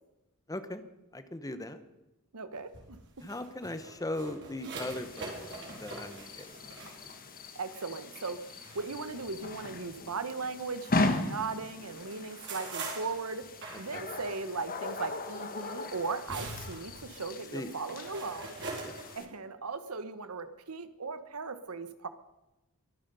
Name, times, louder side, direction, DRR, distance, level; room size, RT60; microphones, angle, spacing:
voice 1, 0.5-0.8 1.1-1.8 3.2-6.5 13.7-14.0 17.5-17.7 18.8-19.0, left 1 dB, 15° left, 10 dB, 1.0 m, -39 dB
voice 2, 2.3-3.0 7.5-13.5 13.8-18.6 19.2-22.1, right 4 dB, 85° right, 11 dB, 1.2 m, -38 dB
sound 1, 2.6-11.1 11.5-19.1, right 3 dB, 55° right, 4.2 m, -45 dB
sound 2, 4.8-19.3, left 2 dB, 40° left, 1.4 m, -38 dB
23.0 x 9.8 x 5.5 m, 0.99 s
head